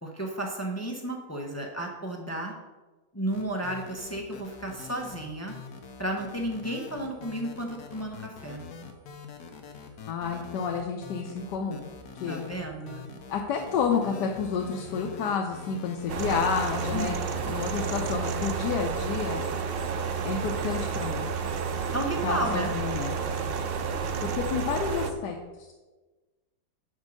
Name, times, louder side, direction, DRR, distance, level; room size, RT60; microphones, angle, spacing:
voice 1, 0.0-2.5 3.1-5.6 6.0-8.6 12.3-13.0 16.9-17.5 21.9-22.7, right 1 dB, 15° left, 0 dB, 0.5 m, -33 dB
sound 1, 3.3-17.9, left 5 dB, 65° left, 1.4 m, -44 dB
voice 2, 10.1-11.9 12.1-12.4 13.3-17.1 17.5-19.4 20.2-21.3 22.2-23.2 24.2-25.8, left 6 dB, 85° left, 2 dB, 1.3 m, -30 dB
sound 2, 16.1-25.1, right 6 dB, 85° right, 0.5 m, -31 dB
6.3 x 5.2 x 6.4 m, 1.2 s
omnidirectional pair, 1.8 m